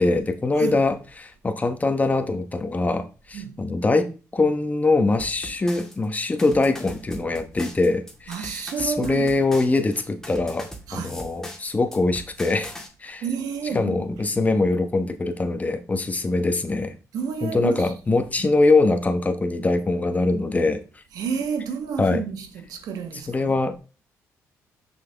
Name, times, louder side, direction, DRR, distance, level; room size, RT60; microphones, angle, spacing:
voice 1, 0.0-12.7 13.0-13.2 13.7-16.9 17.4-21.0 22.0-22.2 23.3-23.8, left 3 dB, 25° left, 1.1 m, -23 dB
sound 1, 5.2-12.9, equal, 5° left, 1.8 m, -40 dB
voice 2, 8.3-9.2 10.9-11.2 13.2-14.0 17.1-17.9 21.1-23.5, right 6 dB, 80° right, 1.2 m, -30 dB
6.0 x 5.8 x 3.5 m
cardioid pair, 80°, 6 cm